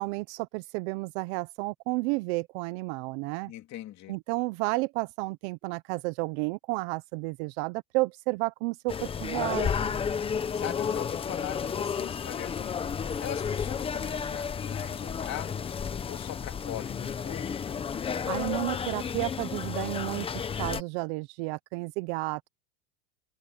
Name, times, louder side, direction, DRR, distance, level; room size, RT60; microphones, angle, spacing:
voice 1, 0.0-3.5 4.1-10.0 18.2-22.5, right 24 dB, 45° right, 0.6 m, -32 dB
voice 2, 3.5-4.2 10.3-12.8 13.2-15.7 16.1-17.6, left 13 dB, 35° left, 3.0 m, -41 dB
sound 1, 8.9-20.8, left 6 dB, 10° left, 0.7 m, -32 dB
supercardioid pair, 150°, 50 cm